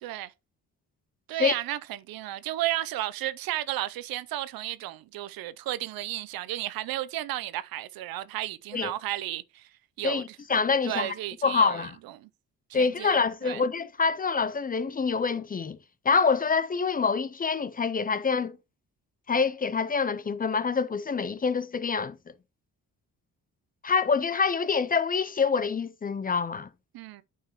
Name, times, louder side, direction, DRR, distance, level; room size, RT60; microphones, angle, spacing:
voice 1, 0.0-0.3 1.3-9.7 10.0-10.4 10.8-11.9 12.2-12.3 12.7-13.6 26.9-27.2, right 14 dB, 85° right, 0.5 m, -33 dB
voice 2, 10.0-11.1 11.4-12.0 12.7-15.8 16.0-18.6 19.3-22.2 23.8-26.7, left 5 dB, 25° left, 0.4 m, -26 dB
8.8 x 4.7 x 2.9 m
cardioid pair, 85°, 34 cm